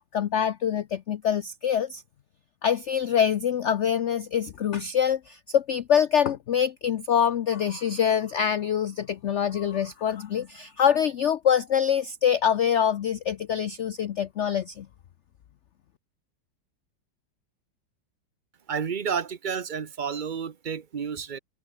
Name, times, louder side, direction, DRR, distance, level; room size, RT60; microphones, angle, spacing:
voice 1, 0.1-2.0 2.6-14.9, left 8 dB, 65° left, 0.7 m, -25 dB
voice 2, 18.7-21.4, right 7 dB, 45° right, 0.6 m, -31 dB
omnidirectional pair, 2.0 m